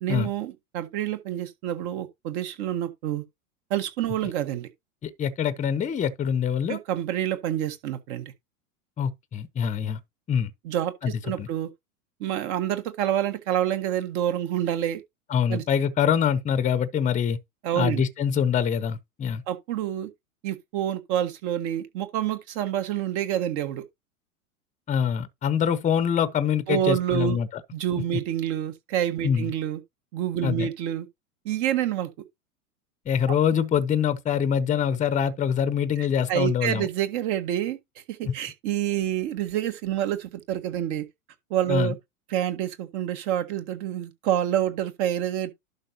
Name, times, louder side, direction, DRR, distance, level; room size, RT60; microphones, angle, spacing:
voice 1, 0.0-3.2 3.7-4.7 6.7-8.3 10.6-11.7 12.2-15.0 15.5-15.6 17.6-18.0 19.5-20.1 20.4-23.8 26.7-27.4 27.7-29.8 30.1-31.1 31.4-32.1 33.3-33.4 36.0-37.8 38.1-41.0 41.5-42.0 42.3-45.5, right 11 dB, 50° right, 1.6 m, -27 dB
voice 2, 5.0-6.8 9.0-10.0 10.3-10.5 11.0-11.1 11.4-11.5 15.3-17.4 17.7-19.4 24.9-27.5 29.2-29.5 30.4-30.7 33.1-36.9 38.3-38.4 41.7-41.9, left 8 dB, 15° left, 0.7 m, -24 dB
11.5 x 5.3 x 2.9 m
hypercardioid pair, 100°, 43 cm